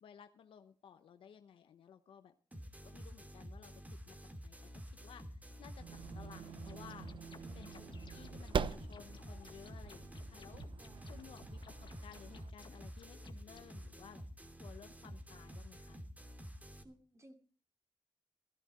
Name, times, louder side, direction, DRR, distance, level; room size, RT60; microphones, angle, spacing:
voice 1, 0.0-2.3 2.8-4.2 4.4-4.7 5.0-7.1 7.5-7.8 8.1-10.6 11.1-14.2 14.6-16.0, left 8 dB, 90° left, 8 dB, 1.0 m, -57 dB
sound 1, 2.5-16.8, equal, 15° right, 2.7 m, -50 dB
sound 2, 5.8-12.5, right 6 dB, 70° right, 0.8 m, -44 dB
sound 3, 6.7-13.7, left 5 dB, 65° left, 2.0 m, -60 dB
voice 2, 7.3-7.9 10.8-11.3 16.8-17.4, right 1 dB, 35° right, 6 dB, 3.3 m, -61 dB
15.5 x 11.0 x 4.3 m, 0.41 s
cardioid pair, 55°, 9 cm